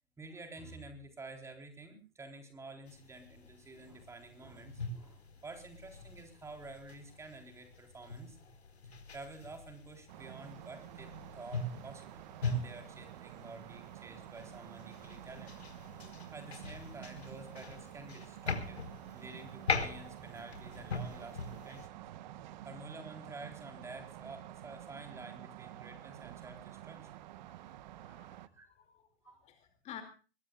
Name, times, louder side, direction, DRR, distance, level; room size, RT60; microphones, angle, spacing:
voice 1, 0.2-8.4 9.1-15.6 16.3-18.8 19.1-22.0 22.6-27.2 28.5-28.7 29.2-29.4, right 2 dB, 10° right, 5 dB, 3.9 m, -50 dB
sound 1, 2.9-21.9, left 3 dB, 85° left, 4.5 m, -42 dB
sound 2, 10.1-28.5, right 13 dB, 45° right, 1.2 m, -50 dB
voice 2, 27.5-27.8 28.0-30.0, left 10 dB, 20° left, 6 dB, 2.6 m, -52 dB
23.0 x 21.5 x 2.4 m, 0.35 s
hypercardioid pair, 135°, 31 cm